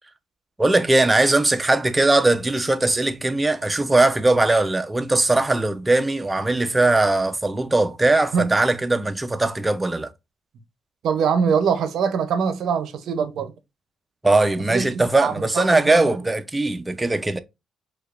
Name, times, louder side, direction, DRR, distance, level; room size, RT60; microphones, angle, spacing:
voice 1, 0.6-10.1 14.2-17.4, right 2 dB, 15° right, 0.4 m, -20 dB
voice 2, 11.0-13.5 14.7-16.2, right 6 dB, 70° right, 0.5 m, -23 dB
4.5 x 2.3 x 2.3 m
cardioid pair, 90°, 0 cm